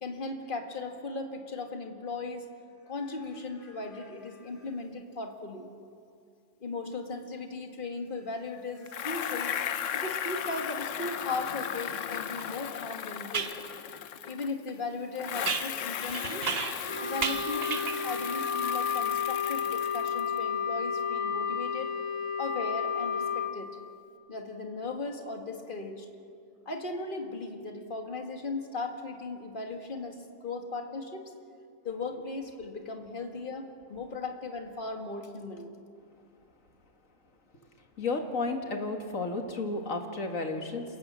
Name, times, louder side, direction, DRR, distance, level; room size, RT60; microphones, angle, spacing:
voice 1, 0.0-2.5 2.9-5.7 6.6-13.5 14.3-16.6 17.0-21.9 22.4-23.7 24.3-26.1 26.7-31.2 31.8-35.7, left 3 dB, 40° left, 4 dB, 2.0 m, -37 dB
Bicycle, 8.9-14.7 15.1-20.4, left 9 dB, 75° left, 1.1 m, -36 dB
sound 1, 12.4-12.5 13.3-13.6 15.5-16.9 17.2-18.1, right 6 dB, 50° right, 1.3 m, -33 dB
Wind instrument woodwind instrument, 16.9-23.5, left 6 dB, 75° right, 2.0 m, -31 dB
voice 2, 38.0-40.8, left 3 dB, 90° left, 4 dB, 2.4 m, -32 dB
27.5 x 17.5 x 7.6 m, 2.4 s
omnidirectional pair, 1.3 m